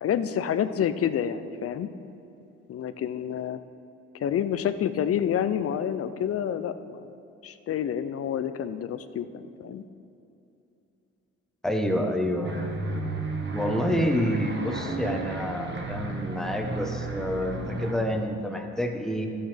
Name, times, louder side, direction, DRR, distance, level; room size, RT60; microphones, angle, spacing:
voice 1, 0.0-1.9 2.7-3.6 4.1-7.1 7.4-9.8, left 9 dB, 50° left, 12 dB, 0.6 m, -28 dB
voice 2, 11.6-12.7 13.5-19.3, equal, ahead, 3 dB, 1.0 m, -28 dB
sound 1, 12.4-17.9, right 2 dB, 35° right, 1.3 m, -33 dB
13.0 x 8.8 x 3.4 m, 2.8 s
cardioid pair, 90°, 30 cm